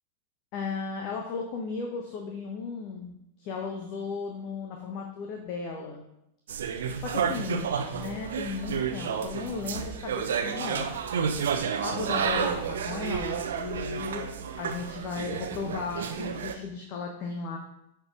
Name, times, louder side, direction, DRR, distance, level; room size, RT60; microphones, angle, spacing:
voice 1, 0.5-6.0 7.0-10.9 11.7-17.6, left 5 dB, 40° left, 2 dB, 1.2 m, -35 dB
sound 1, 6.5-16.5, right 7 dB, 60° right, 0.8 m, -31 dB
9.4 x 4.7 x 4.8 m, 0.82 s
figure-of-eight pair, 90°, 0 cm